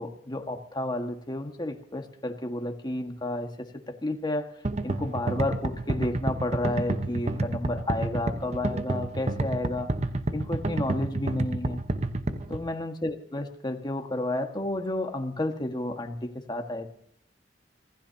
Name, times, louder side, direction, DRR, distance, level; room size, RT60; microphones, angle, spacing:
voice 1, 0.0-4.5 4.8-9.9 10.3-11.8 12.5-16.9, left 1 dB, 25° left, 4 dB, 1.6 m, -31 dB
sound 1, 4.6-12.6, right 2 dB, 40° right, 1.1 m, -29 dB
25.5 x 16.0 x 2.8 m, 0.69 s
head